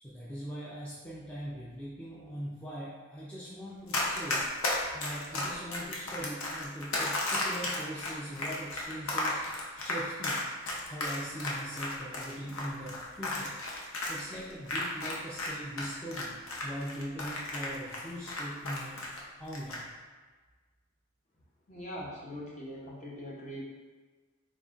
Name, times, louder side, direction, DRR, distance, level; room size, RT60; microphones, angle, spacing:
voice 1, 0.0-9.4 9.7-10.4 10.8-13.5 14.1-16.3 16.6-19.0 19.4-19.8, equal, 5° left, -9 dB, 0.5 m, -41 dB
Run, 3.9-15.5 15.8-19.2 19.5-19.8, left 2 dB, 70° left, 0.7 m, -33 dB
voice 2, 21.7-23.6, equal, 35° left, -5 dB, 0.7 m, -42 dB
4.0 x 3.6 x 2.4 m, 1.4 s
head